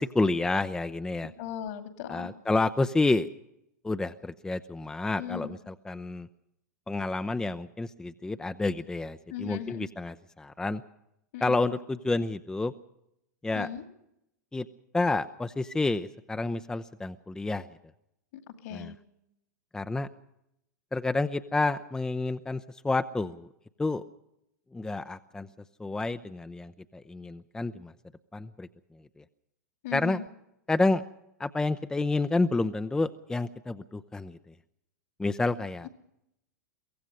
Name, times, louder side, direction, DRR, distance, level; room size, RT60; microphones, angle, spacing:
voice 1, 0.0-1.3 2.1-3.3 3.8-6.3 6.9-10.8 11.4-12.7 13.4-13.7 14.5-14.7 14.9-17.7 18.7-18.9 19.7-20.1 20.9-23.5 23.8-24.0 24.7-25.5 25.8-27.9 28.3-28.7 29.2-29.3 29.9-30.2 30.7-31.0 31.4-34.4 35.2-35.9, left 3 dB, 5° left, 10 dB, 0.6 m, -29 dB
voice 2, 1.4-2.3 5.2-5.5 9.3-9.8 11.3-11.6 13.5-13.8 18.3-18.9 29.8-30.2, left 9 dB, 55° left, 8 dB, 2.4 m, -37 dB
23.5 x 17.0 x 6.6 m, 0.81 s
figure-of-eight pair, 100°, 10 cm